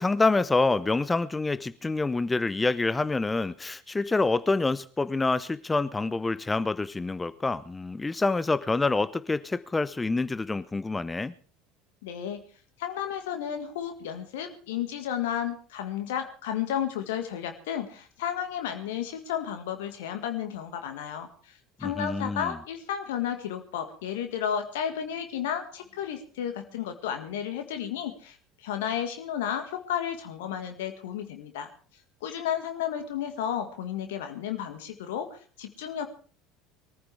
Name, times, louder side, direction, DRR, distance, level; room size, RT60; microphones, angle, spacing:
voice 1, 0.0-11.3 21.8-22.6, left 3 dB, 15° left, 0.8 m, -27 dB
voice 2, 12.0-12.4 12.8-31.7 32.2-36.1, left 9 dB, 65° left, 1.9 m, -33 dB
23.0 x 14.5 x 3.5 m
figure-of-eight pair, 65°, 0 cm